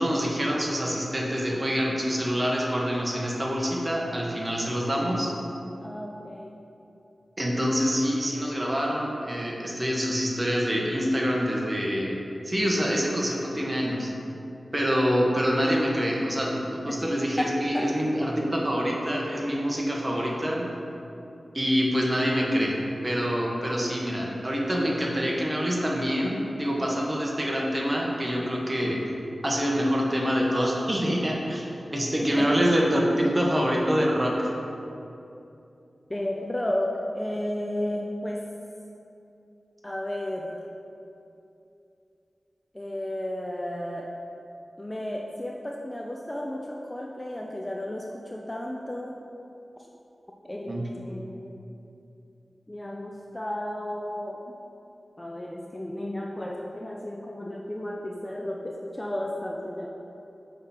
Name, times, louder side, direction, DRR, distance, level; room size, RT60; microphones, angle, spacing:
voice 1, 0.0-5.3 7.4-12.2 12.4-14.1 14.7-16.6 16.8-20.7 21.5-22.7 23.0-29.0 29.4-31.7 31.9-34.5 50.7-50.9, equal, 25° right, -3 dB, 1.1 m, -26 dB
voice 2, 5.8-6.6 16.9-17.0 17.4-18.1 32.1-32.7 33.1-33.2 36.1-38.4 39.8-40.6 42.7-44.1 44.8-49.2 50.5-51.6 52.7-54.6 55.2-59.9, left 1 dB, 15° left, -1 dB, 0.4 m, -33 dB
6.5 x 3.6 x 5.7 m, 2.8 s
wide cardioid pair, 95°, 0 cm